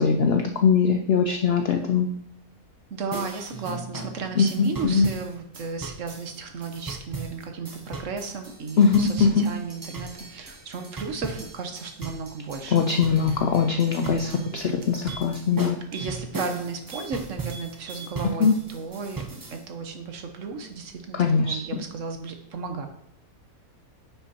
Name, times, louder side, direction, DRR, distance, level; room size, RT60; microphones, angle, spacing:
voice 1, 0.0-2.1 4.4-5.1 8.8-9.5 12.7-15.8 18.4-18.5 21.1-21.8, left 5 dB, 70° left, 5 dB, 0.6 m, -21 dB
voice 2, 2.9-12.9 14.1-14.6 15.9-22.9, right 4 dB, 60° right, 5 dB, 1.1 m, -34 dB
sound 1, 3.1-19.6, right 3 dB, 30° right, 0.4 m, -38 dB
sound 2, 14.8-15.5 15.9-16.1 16.4-16.6 16.8-17.1 17.4-18.2 18.5-18.6, right 2 dB, 90° right, 1.5 m, -43 dB
9.7 x 5.7 x 2.8 m, 0.72 s
omnidirectional pair, 1.6 m